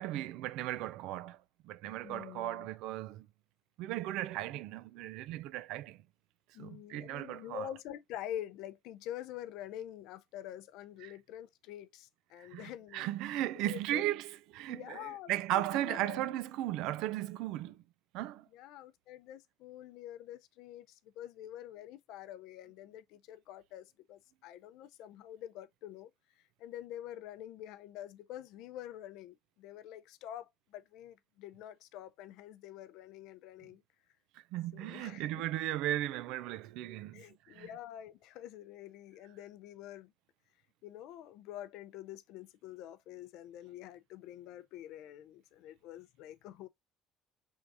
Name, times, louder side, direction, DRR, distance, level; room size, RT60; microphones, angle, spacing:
voice 1, 0.0-1.4 1.6-3.3 3.8-6.0 6.6-7.7 11.0-11.1 12.4-17.8 18.1-18.5 34.5-37.7, right 14 dB, 80° right, 0.3 m, -36 dB
voice 2, 2.0-2.7 6.5-13.1 13.7-14.0 14.7-16.4 18.5-26.1 26.6-33.8 34.7-35.4 37.1-40.1 40.8-46.7, left 12 dB, 80° left, 0.5 m, -47 dB
4.6 x 3.6 x 2.5 m
cardioid pair, 115°, 0 cm